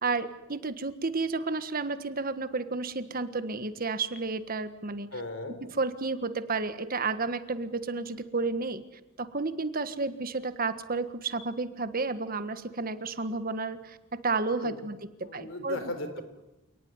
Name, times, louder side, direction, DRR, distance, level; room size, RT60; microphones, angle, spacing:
voice 1, 0.0-5.1 5.7-8.8 9.2-15.8, right 3 dB, 45° right, 11 dB, 1.5 m, -31 dB
voice 2, 5.1-5.6 14.6-14.9 15.2-16.2, left 1 dB, 70° left, 9 dB, 4.1 m, -37 dB
28.5 x 19.0 x 9.6 m, 0.98 s
head